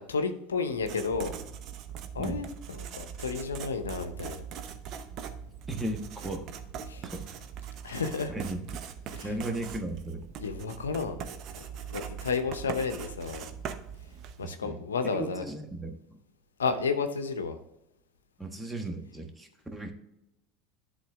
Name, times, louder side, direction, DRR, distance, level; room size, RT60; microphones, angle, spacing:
voice 1, 0.0-1.4 2.1-4.4 6.9-7.0 7.8-8.3 9.1-9.3 10.4-11.2 11.5-13.5 14.4-15.4 16.6-17.6, left 5 dB, 90° left, 8 dB, 0.7 m, -32 dB
Writing, 0.7-14.5, right 8 dB, 50° right, 0.8 m, -41 dB
voice 2, 5.7-6.4 7.0-7.4 8.3-8.6 9.2-10.2 14.4-16.0 18.4-19.9, right 2 dB, 10° right, 4 dB, 1.2 m, -36 dB
11.0 x 3.9 x 3.5 m, 0.87 s
hypercardioid pair, 85°, 0 cm